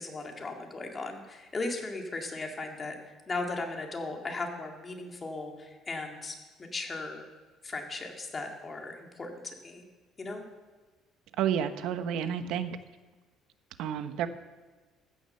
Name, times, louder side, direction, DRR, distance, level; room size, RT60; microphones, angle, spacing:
voice 1, 0.0-3.0 3.3-6.3 6.7-7.3 7.6-9.8 10.2-10.4, left 3 dB, 20° left, 2 dB, 2.3 m, -37 dB
voice 2, 11.4-12.8 13.8-14.3, right 9 dB, 70° right, 10 dB, 1.0 m, -30 dB
15.0 x 10.0 x 6.7 m, 1.3 s
cardioid pair, 145°, 0 cm